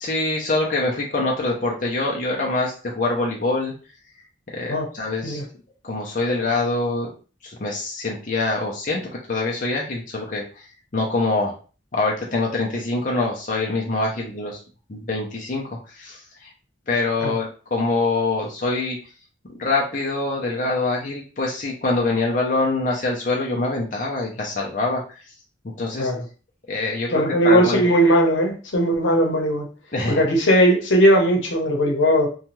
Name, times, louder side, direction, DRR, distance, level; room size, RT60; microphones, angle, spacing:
voice 1, 0.0-3.7 4.5-5.4 5.8-7.1 7.4-10.6 10.9-11.6 11.9-14.6 14.9-16.2 16.9-19.0 19.5-25.2 25.6-26.1 26.7-27.9 29.9-30.2, left 2 dB, 45° left, -2 dB, 0.5 m, -24 dB
voice 2, 27.1-29.7 30.1-32.3, equal, 85° left, 2 dB, 0.8 m, -18 dB
2.7 x 2.3 x 3.0 m, 0.36 s
head